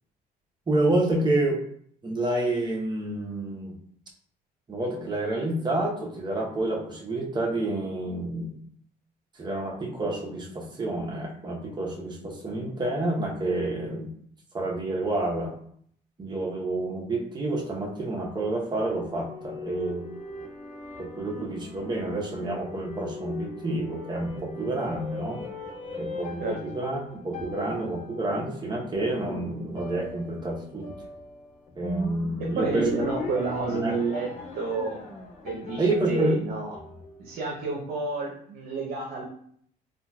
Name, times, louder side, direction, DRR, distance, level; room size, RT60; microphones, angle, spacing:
voice 1, 0.7-1.6 2.0-3.8 4.7-8.5 9.4-14.1 14.5-15.5 16.2-20.1 21.0-25.4 26.0-30.9 31.8-32.9 33.3-33.9 35.8-36.4, right 2 dB, 25° right, -1 dB, 0.8 m, -29 dB
sound 1, 18.9-37.5, left 2 dB, 45° left, 0.7 m, -39 dB
voice 2, 32.4-34.3 34.5-35.0 35.4-36.7 37.2-39.2, right 4 dB, 65° right, -2 dB, 0.7 m, -30 dB
3.8 x 2.3 x 2.2 m, 0.63 s
cardioid pair, 110°, 17 cm